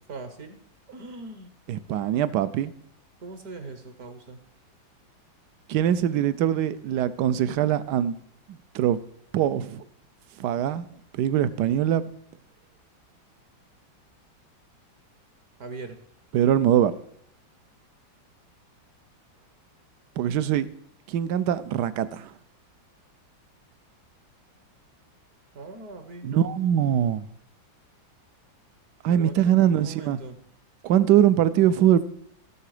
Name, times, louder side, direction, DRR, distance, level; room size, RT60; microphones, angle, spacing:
voice 1, 0.1-0.6 0.9-1.5 3.2-4.4 15.6-16.0 25.5-26.3 29.1-30.4, right 3 dB, 55° right, 1.5 m, -40 dB
voice 2, 1.7-2.7 5.7-8.2 8.7-9.0 9.3-9.8 10.4-10.9 11.1-12.1 16.3-16.9 20.2-20.7 21.1-22.3 26.2-27.2 29.0-30.2 30.8-32.0, right 10 dB, 70° right, 1.1 m, -22 dB
15.5 x 6.8 x 4.9 m
omnidirectional pair, 2.1 m